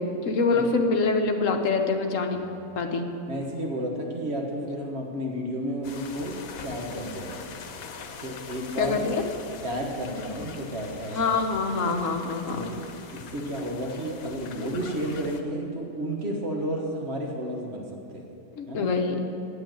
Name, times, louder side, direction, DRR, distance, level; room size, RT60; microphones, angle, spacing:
voice 1, 0.0-2.4 2.8-3.1 8.8-9.2 11.1-12.7 18.6-19.3, left 4 dB, 70° left, 4 dB, 1.2 m, -25 dB
voice 2, 3.3-7.5 8.2-9.1 9.6-11.9 12.5-12.8 13.1-18.3 18.7-18.9, equal, 50° right, 0 dB, 1.7 m, -32 dB
sound 1, 5.8-15.4, left 6 dB, 90° left, 1.2 m, -42 dB
8.9 x 7.8 x 9.1 m, 2.8 s
omnidirectional pair, 1.5 m